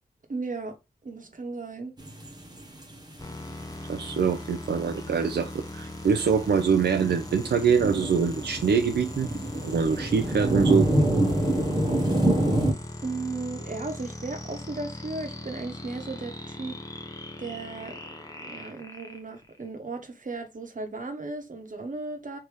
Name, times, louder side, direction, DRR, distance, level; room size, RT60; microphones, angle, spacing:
voice 1, 0.3-0.8 1.0-2.0 13.0-16.8 17.4-22.4, right 3 dB, 50° right, 1.2 m, -36 dB
sound 1, 2.0-3.2 3.6-3.7 4.0-4.3 4.9-5.1 5.4-5.5 5.9-12.7, right 1 dB, 25° right, 1.1 m, -26 dB
sound 2, 3.2-19.7, left 1 dB, 20° left, 0.9 m, -40 dB
voice 2, 3.9-9.3 9.6-10.9, right 6 dB, 80° right, 0.5 m, -24 dB
3.4 x 2.9 x 4.6 m
wide cardioid pair, 75°, 17 cm